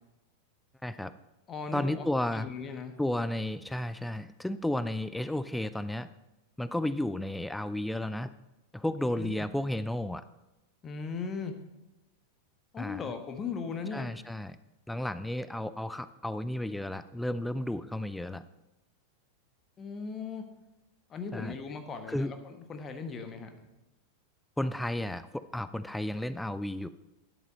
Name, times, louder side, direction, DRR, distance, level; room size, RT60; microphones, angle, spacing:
voice 1, 0.8-1.1 1.7-2.5 3.0-6.1 6.6-8.3 8.7-10.2 12.8-13.0 13.9-14.6 14.9-18.4 21.3-21.5 22.1-22.3 24.6-26.9, left 1 dB, 5° left, 14 dB, 0.4 m, -33 dB
voice 2, 1.5-2.1 2.3-2.9 9.1-9.5 10.8-11.5 12.7-14.1 19.8-20.4 21.1-22.4 22.7-23.5, left 5 dB, 25° left, 7 dB, 1.3 m, -37 dB
10.5 x 8.2 x 5.3 m, 0.97 s
figure-of-eight pair, 90°, 0 cm